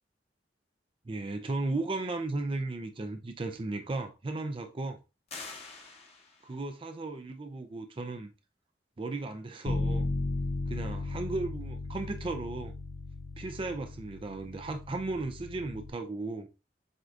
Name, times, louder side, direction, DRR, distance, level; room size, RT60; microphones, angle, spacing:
voice 1, 1.1-5.0 6.4-8.3 9.0-10.1 10.7-12.7 13.4-16.5, right 2 dB, 30° right, 0.4 m, -35 dB
sound 1, 5.3-6.7, left 4 dB, 35° left, 0.8 m, -45 dB
Bass guitar, 9.7-15.9, left 2 dB, 70° left, 0.5 m, -36 dB
7.6 x 2.6 x 2.4 m
head